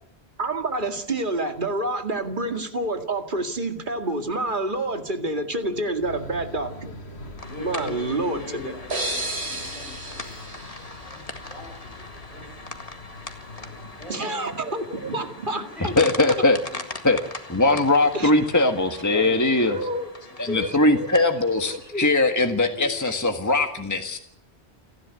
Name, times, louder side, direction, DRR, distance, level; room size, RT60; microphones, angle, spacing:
voice 1, 0.4-6.9 7.6-8.7 14.1-15.9 18.1-18.5 19.7-20.1 20.5-21.1 21.7-22.1, right 2 dB, 50° right, 6 dB, 2.3 m, -28 dB
sound 1, 6.0-14.1, left 2 dB, 75° left, 2.2 m, -43 dB
sound 2, 7.4-22.7, left 2 dB, 35° left, 2.0 m, -41 dB
voice 2, 7.4-10.4 10.8-13.0 13.5-14.5 15.0-15.3 15.5-17.1 18.9-20.8 22.2-24.2, left 2 dB, 30° right, -2 dB, 7.4 m, -42 dB
sound 3, 8.9-11.7, right 2 dB, 75° right, 4.4 m, -33 dB
voice 3, 16.0-16.6 17.0-17.2 17.5-19.7 20.4-24.2, left 2 dB, 15° left, 5 dB, 1.6 m, -20 dB
29.5 x 11.5 x 9.7 m, 0.71 s
omnidirectional pair, 1.1 m